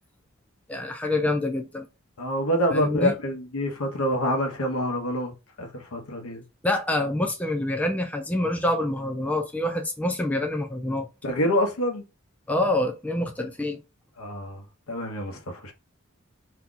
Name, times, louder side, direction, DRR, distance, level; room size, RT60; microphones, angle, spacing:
voice 1, 0.7-1.9 2.7-3.1 6.6-11.1 12.5-13.8, left 1 dB, 5° left, 0.4 m, -26 dB
voice 2, 2.2-6.4 11.2-12.0 14.2-15.7, equal, 85° left, 0.9 m, -27 dB
2.8 x 2.3 x 3.8 m
head